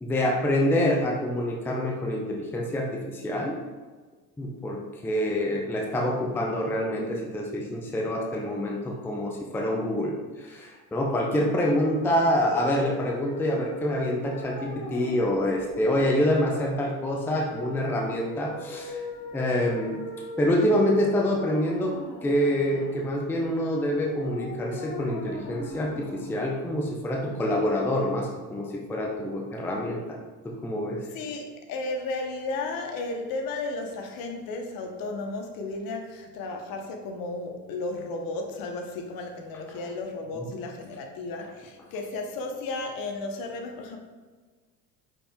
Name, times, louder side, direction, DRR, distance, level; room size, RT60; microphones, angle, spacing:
voice 1, 0.0-3.6 4.4-19.0 19.3-20.1 20.4-21.9 22.2-30.0 30.4-31.0 40.3-40.5, left 1 dB, 5° left, -1 dB, 0.5 m, -26 dB
sound 1, 12.2-27.1, left 1 dB, 60° left, 1.2 m, -40 dB
voice 2, 31.1-44.0, left 3 dB, 45° left, 4 dB, 0.8 m, -34 dB
5.3 x 4.4 x 2.2 m, 1.4 s
figure-of-eight pair, 70°, 48 cm